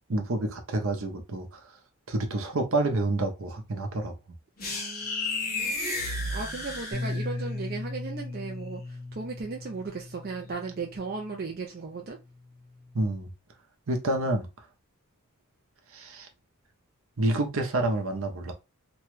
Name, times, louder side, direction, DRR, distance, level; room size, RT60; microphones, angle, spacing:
voice 1, 0.1-1.6 2.1-4.1 12.9-13.3 13.9-14.5 15.9-16.3 17.2-18.5, right 2 dB, 70° right, 0.7 m, -28 dB
sound 1, 4.6-7.5, left 2 dB, 40° left, 1.1 m, -32 dB
voice 2, 4.6-5.8 6.3-12.2, right 4 dB, 45° right, 0.4 m, -36 dB
Bass guitar, 6.9-11.4 12.2-13.2, left 3 dB, 5° left, 0.8 m, -38 dB
3.0 x 2.3 x 3.1 m
head